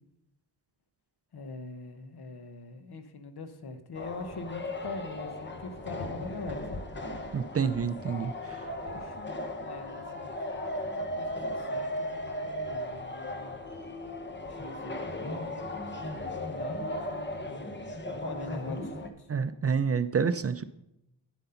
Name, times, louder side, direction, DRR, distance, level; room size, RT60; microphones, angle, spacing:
voice 1, 1.3-6.8 8.2-10.3 10.9-13.6 14.4-16.1 16.5-17.6 18.2-19.3, left 3 dB, 65° left, 9 dB, 1.1 m, -43 dB
sound 1, 3.9-19.1, left 1 dB, 25° left, 1.0 m, -36 dB
voice 2, 7.3-8.6 19.3-20.6, right 6 dB, 35° right, 11 dB, 0.4 m, -28 dB
9.3 x 7.6 x 5.7 m, 0.87 s
wide cardioid pair, 130°, 41 cm